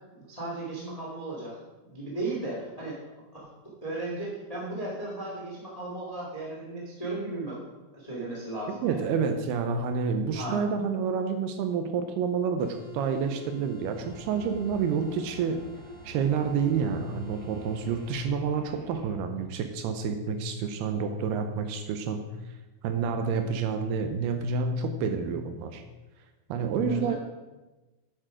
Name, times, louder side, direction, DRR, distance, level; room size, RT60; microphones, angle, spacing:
voice 1, 0.1-1.6 1.9-3.0 3.4-3.5 3.8-7.6 7.9-9.0 10.3-10.7 26.8-27.1, right 2 dB, 35° left, -4 dB, 0.6 m, -35 dB
voice 2, 8.7-15.6 16.0-22.2 22.8-25.8 26.5-27.1, right 6 dB, 80° right, 7 dB, 2.5 m, -29 dB
sound 1, 12.6-18.3, left 4 dB, 55° left, 2.3 m, -51 dB
sound 2, 13.9-19.1, right 2 dB, 60° right, 2.4 m, -49 dB
9.2 x 7.5 x 5.0 m, 1.1 s
omnidirectional pair, 4.9 m